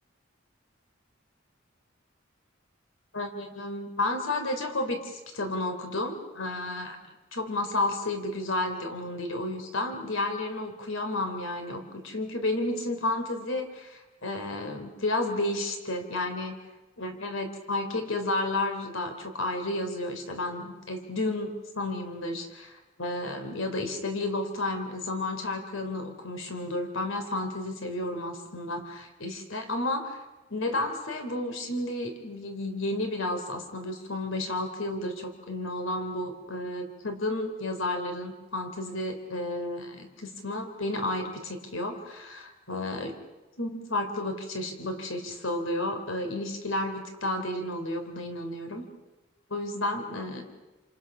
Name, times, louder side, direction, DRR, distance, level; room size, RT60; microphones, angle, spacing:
voice 1, 3.1-7.0 7.3-16.6 17.0-30.2 30.5-43.1 43.6-48.9 49.5-50.5, left 2 dB, 75° left, 5 dB, 3.4 m, -32 dB
29.5 x 28.0 x 6.1 m, 1.1 s
head